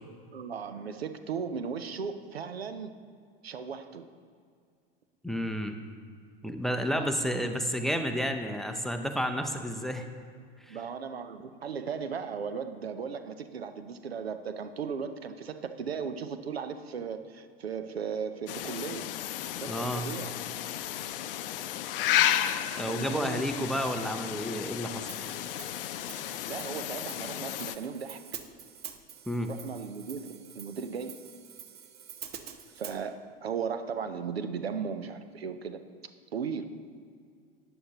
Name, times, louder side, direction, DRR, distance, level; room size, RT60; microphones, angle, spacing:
voice 1, 0.3-3.0 3.4-4.1 6.9-7.1 7.6-7.9 10.7-19.1 19.6-20.3 21.5-21.6 22.9-23.5 26.5-28.4 29.5-31.2 32.8-35.8 36.3-36.6, right 6 dB, 80° right, 10 dB, 0.7 m, -36 dB
voice 2, 5.2-5.8 6.4-10.1 10.6-10.8 19.7-20.1 22.7-25.1 29.3-29.5, equal, ahead, 6 dB, 0.7 m, -31 dB
sound 1, 18.5-27.8, left 11 dB, 65° left, 0.6 m, -33 dB
Hi-hat, 25.1-33.0, right 9 dB, 35° right, 0.8 m, -47 dB
14.0 x 9.8 x 3.0 m, 2.1 s
figure-of-eight pair, 85°, 30 cm